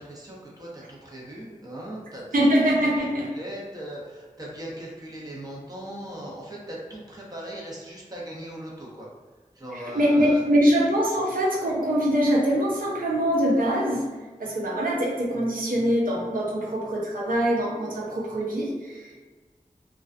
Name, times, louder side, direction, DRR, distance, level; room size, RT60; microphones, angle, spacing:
voice 1, 0.0-2.2 3.3-9.1 9.6-10.4, right 1 dB, 25° right, -5 dB, 0.7 m, -39 dB
voice 2, 2.3-3.3 9.7-14.1 14.4-19.1, equal, 85° right, -4 dB, 0.5 m, -23 dB
2.3 x 2.2 x 2.5 m, 1.3 s
wide cardioid pair, 50°, 14 cm